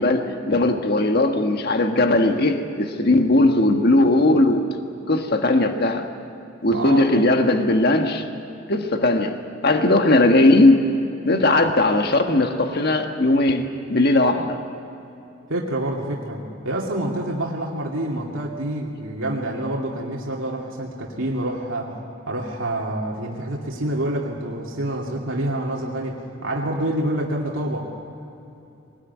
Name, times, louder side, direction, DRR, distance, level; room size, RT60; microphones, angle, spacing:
voice 1, 0.0-4.6 5.1-6.1 6.6-8.3 8.7-9.4 9.6-10.9 11.2-14.6, left 2 dB, 50° left, 5 dB, 1.5 m, -18 dB
voice 2, 6.7-7.1 15.5-21.9 22.3-27.9, right 1 dB, 85° right, -2 dB, 2.5 m, -27 dB
23.5 x 19.5 x 9.4 m, 2.9 s
head